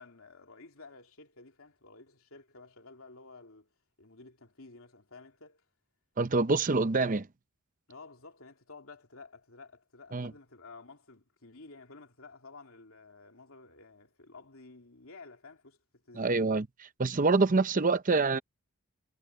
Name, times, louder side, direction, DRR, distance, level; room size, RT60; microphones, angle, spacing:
voice 1, 0.0-3.7 4.0-5.6 7.9-16.4, left 3 dB, 70° left, 3.1 m, -52 dB
voice 2, 6.2-7.3 10.1-10.3 16.2-16.7 17.0-18.4, right 3 dB, 35° right, 0.7 m, -26 dB
head